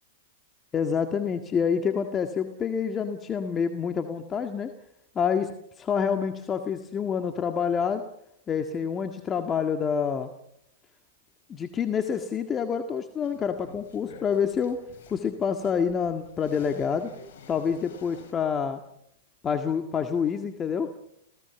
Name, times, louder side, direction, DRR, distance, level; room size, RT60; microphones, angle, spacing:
voice 1, 0.7-4.7 5.2-5.5 5.8-8.0 8.5-10.3 11.5-14.8 15.1-17.1 17.5-18.8 19.4-20.9, left 7 dB, 25° left, 6 dB, 1.8 m, -27 dB
sound 1, 13.2-18.3, left 5 dB, 65° left, 7.2 m, -51 dB
28.5 x 17.5 x 7.1 m, 0.76 s
hypercardioid pair, 115°, 0 cm